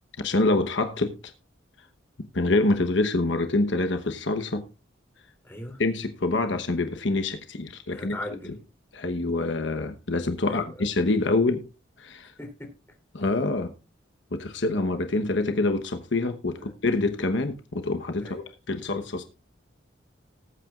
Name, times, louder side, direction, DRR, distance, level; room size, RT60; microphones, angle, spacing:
voice 1, 0.2-1.2 2.3-4.6 5.8-8.2 8.9-11.7 12.0-12.3 13.1-13.7 14.3-19.2, left 2 dB, 70° left, 1.1 m, -26 dB
voice 2, 5.4-5.8 7.9-8.6 10.4-10.9 12.4-12.7 16.5-16.7 18.2-18.4, left 1 dB, 10° left, 3.2 m, -39 dB
19.5 x 9.0 x 2.5 m
head